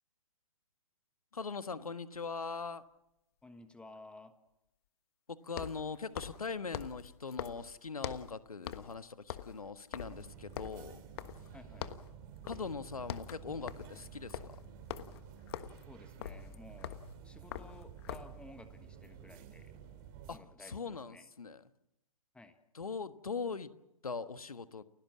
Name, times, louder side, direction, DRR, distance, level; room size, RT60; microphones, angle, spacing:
voice 1, 1.3-2.8 5.3-11.0 12.4-14.4 20.3-21.6 22.7-23.7 24.0-24.8, left 4 dB, 80° left, 12 dB, 1.4 m, -41 dB
sound 1, 2.1-2.2 5.5-8.4 8.7-9.0 9.2-11.5 11.8-12.1 12.5-12.7 13.0-18.4, left 11 dB, 45° left, 1.4 m, -44 dB
voice 2, 3.4-4.4 11.5-11.9 15.9-19.8 20.3-20.8 21.1-21.3 22.3-22.6, left 2 dB, 5° left, 9 dB, 1.3 m, -55 dB
sound 2, 10.0-20.4, right 8 dB, 35° right, 3.1 m, -52 dB
29.5 x 16.0 x 7.4 m, 0.86 s
figure-of-eight pair, 120°, 18 cm